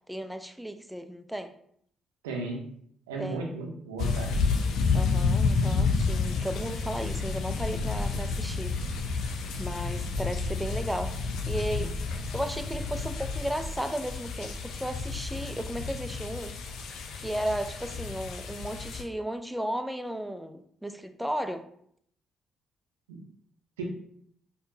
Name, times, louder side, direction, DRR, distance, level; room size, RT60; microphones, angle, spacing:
voice 1, 0.1-1.5 3.2-3.4 4.9-8.7 9.6-11.9 12.3-16.6 17.1-21.6, right 1 dB, 5° right, 8 dB, 0.4 m, -34 dB
voice 2, 2.2-2.7 3.1-4.3 23.1-23.2 23.8-23.9, right 3 dB, 85° right, 1 dB, 0.6 m, -35 dB
sound 1, 4.0-19.0, left 4 dB, 70° left, 0.4 m, -30 dB
5.1 x 2.2 x 2.7 m, 0.66 s
hypercardioid pair, 45°, 0 cm